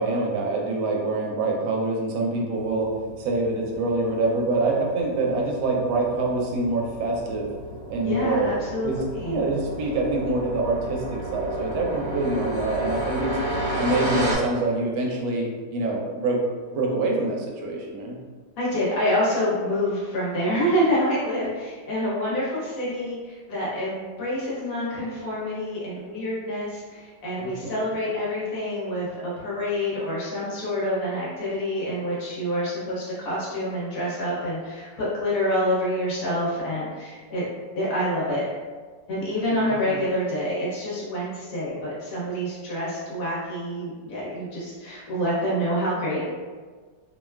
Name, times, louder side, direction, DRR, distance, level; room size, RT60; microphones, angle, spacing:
voice 1, 0.0-7.5 7.9-8.5 8.8-9.0 9.3-13.4 13.8-16.4 16.7-18.2 27.4-27.7 39.5-39.6 39.9-40.0, right 2 dB, 85° right, -1 dB, 1.3 m, -25 dB
sound 1, 2.5-14.4, right 1 dB, 70° right, 0.9 m, -33 dB
voice 2, 8.0-9.4 18.6-37.5 37.8-38.5 39.1-46.2, equal, 55° left, -7 dB, 1.1 m, -27 dB
3.1 x 2.2 x 2.2 m, 1.5 s
omnidirectional pair, 2.1 m